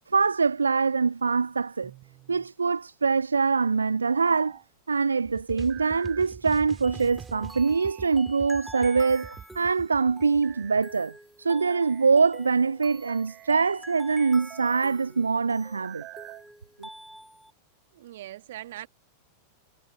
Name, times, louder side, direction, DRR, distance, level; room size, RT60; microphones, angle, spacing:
voice 1, 0.1-1.9 2.3-4.6 4.9-11.1 11.4-16.0 16.8-16.9, right 5 dB, 75° right, 0.3 m, -24 dB
sound 1, 1.8-2.5 3.9-4.6 5.5-6.3 7.3-8.1 8.7-9.4 10.0-10.9 11.5-12.1 12.9-13.8 14.4-14.9 15.6-16.5, right 18 dB, 40° right, 3.4 m, -47 dB
sound 2, 5.2-10.9, right 7 dB, 20° right, 3.0 m, -43 dB
sound 3, 6.8-17.5, right 1 dB, ahead, 5.3 m, -47 dB
voice 2, 17.9-18.9, right 14 dB, 55° right, 2.2 m, -41 dB
figure-of-eight pair, 90°, 0 cm